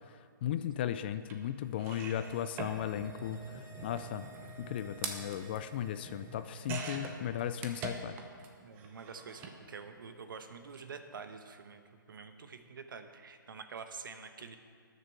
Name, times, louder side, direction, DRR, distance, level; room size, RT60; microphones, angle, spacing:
voice 1, 0.4-4.3 4.6-8.2, left 10 dB, 30° left, 12 dB, 0.3 m, -36 dB
sound 1, 1.3-1.4 1.8-8.5 8.8-9.6 10.6-10.8 11.0-11.1, right 4 dB, 20° right, 0.8 m, -44 dB
sound 2, 1.7-7.2 7.5-7.6, equal, 80° left, 2.1 m, -56 dB
voice 2, 8.6-11.8 12.1-14.6, right 5 dB, 65° right, 8 dB, 1.1 m, -47 dB
19.0 x 6.7 x 4.6 m, 2.1 s
hypercardioid pair, 155°, 12 cm